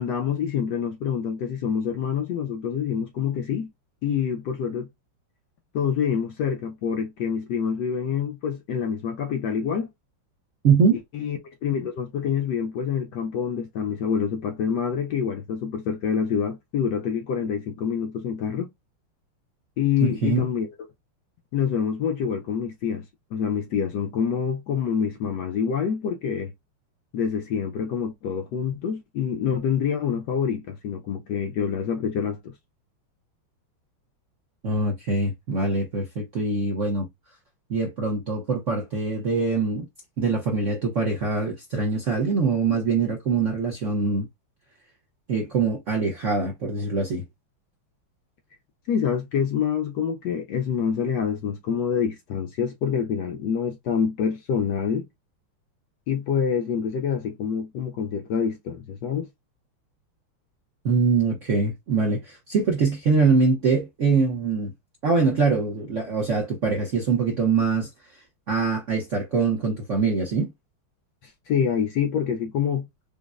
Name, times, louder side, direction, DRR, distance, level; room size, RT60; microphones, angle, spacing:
voice 1, 0.0-3.7 4.0-4.9 5.7-9.9 11.1-18.7 19.8-20.7 21.5-23.0 23.3-26.5 27.1-32.5 48.9-55.0 56.1-59.3 71.2-72.9, left 7 dB, 70° left, 1.0 m, -26 dB
voice 2, 10.6-11.0 20.0-20.4 34.6-37.1 37.7-39.9 40.2-44.3 45.3-47.3 60.8-64.7 65.0-70.5, right 4 dB, 65° right, 0.7 m, -23 dB
5.1 x 2.0 x 2.4 m
omnidirectional pair, 2.3 m